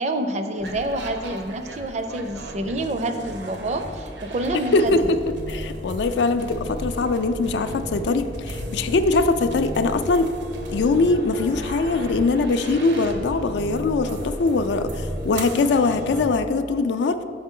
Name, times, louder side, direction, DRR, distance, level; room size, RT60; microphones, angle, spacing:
voice 1, 0.0-4.9, right 1 dB, 40° right, 7 dB, 0.4 m, -27 dB
sound 1, 0.6-16.2, equal, 85° right, 0.8 m, -34 dB
voice 2, 4.5-5.2 5.5-10.3 10.7-17.2, left 3 dB, 75° left, 10 dB, 0.4 m, -22 dB
6.2 x 5.7 x 3.7 m, 2.2 s
head